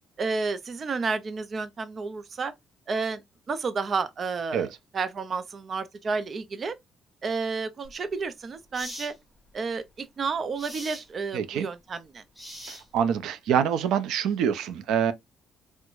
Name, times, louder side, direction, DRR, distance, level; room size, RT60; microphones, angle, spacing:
voice 1, 0.2-2.5 2.9-3.2 3.5-4.7 4.9-6.8 7.2-9.1 9.5-12.2, right 4 dB, 30° right, 0.4 m, -31 dB
sound 1, 7.8-8.0 8.7-9.1 10.6-11.1 12.3-13.1, equal, ahead, 0.7 m, -41 dB
voice 2, 11.3-11.7 12.7-15.1, right 8 dB, 85° right, 0.5 m, -25 dB
4.5 x 2.1 x 2.3 m
cardioid pair, 180°, 0 cm